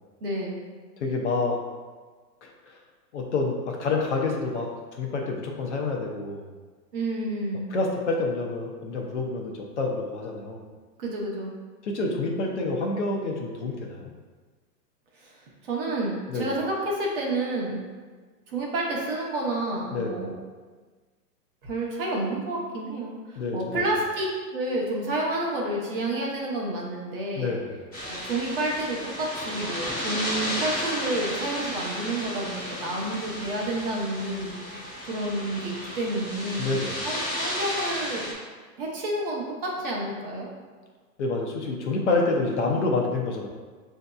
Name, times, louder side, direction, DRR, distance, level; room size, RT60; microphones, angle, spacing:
voice 1, 0.2-0.6 6.9-7.7 11.0-11.5 15.2-15.3 15.6-17.8 18.5-20.3 21.6-24.3 24.5-27.5 28.0-34.8 35.1-38.3 38.8-40.5, right 1 dB, 35° right, -2 dB, 0.7 m, -30 dB
voice 2, 1.0-1.6 2.4-2.8 3.1-6.5 7.7-10.6 11.8-14.1 16.3-16.5 19.9-20.2 23.4-23.9 27.4-27.7 36.6-37.0 41.2-43.5, left 3 dB, 45° left, 0 dB, 0.5 m, -28 dB
sound 1, 27.9-38.3, equal, 5° left, 0.7 m, -33 dB
6.2 x 2.7 x 2.2 m, 1.4 s
hypercardioid pair, 160°, 50 cm